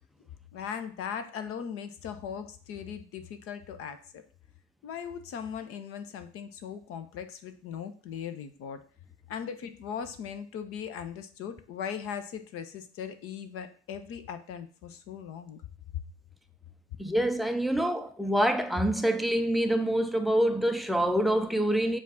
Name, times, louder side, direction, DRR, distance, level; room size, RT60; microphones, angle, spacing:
voice 1, 0.5-4.2 4.8-8.8 9.3-15.6, left 7 dB, 40° left, 0.7 m, -39 dB
voice 2, 17.0-22.0, right 1 dB, ahead, 0.4 m, -26 dB
7.2 x 2.5 x 5.6 m
figure-of-eight pair, 75°, 34 cm